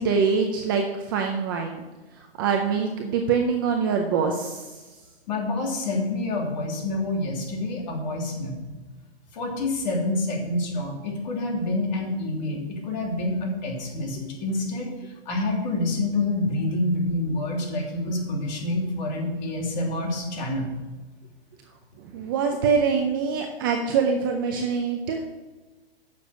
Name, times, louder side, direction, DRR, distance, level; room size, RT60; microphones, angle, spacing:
voice 1, 0.0-1.8 2.4-4.7 22.1-25.2, right 5 dB, 20° right, 3 dB, 0.5 m, -24 dB
voice 2, 5.3-8.6 9.3-14.9 15.3-20.7, left 2 dB, 45° left, -1 dB, 3.1 m, -27 dB
10.0 x 7.0 x 6.5 m, 1.2 s
hypercardioid pair, 165°, 32 cm